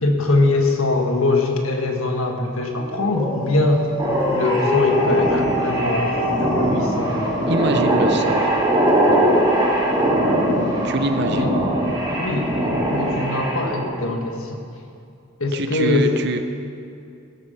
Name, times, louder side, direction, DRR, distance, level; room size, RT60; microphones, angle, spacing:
voice 1, 0.0-3.9 4.3-7.5 11.3-11.7 12.2-14.6 15.4-16.1, left 2 dB, 80° left, 3 dB, 1.6 m, -22 dB
Dog, 2.8-8.4, left 1 dB, 25° left, 2.4 m, -26 dB
sound 1, 4.0-13.9, right 1 dB, 25° right, 3.2 m, -21 dB
voice 2, 7.5-8.5 10.8-11.4 15.5-16.4, right 2 dB, 55° right, 8 dB, 0.8 m, -24 dB
16.0 x 8.7 x 5.7 m, 2.5 s
head